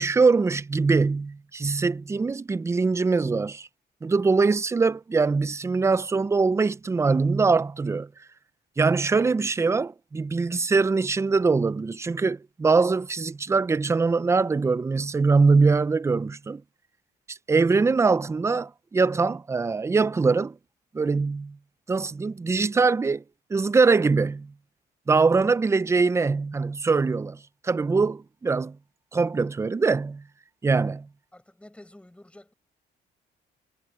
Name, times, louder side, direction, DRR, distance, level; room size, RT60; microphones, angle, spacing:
voice 1, 0.0-3.7 4.0-8.1 8.8-16.6 17.3-20.5 20.9-21.6 21.9-23.2 23.5-24.5 25.1-28.8 29.1-30.2 30.6-31.1, right 4 dB, 15° right, 0.4 m, -23 dB
voice 2, 31.3-32.5, left 1 dB, 5° left, 6.2 m, -49 dB
cardioid pair, 145°, 18 cm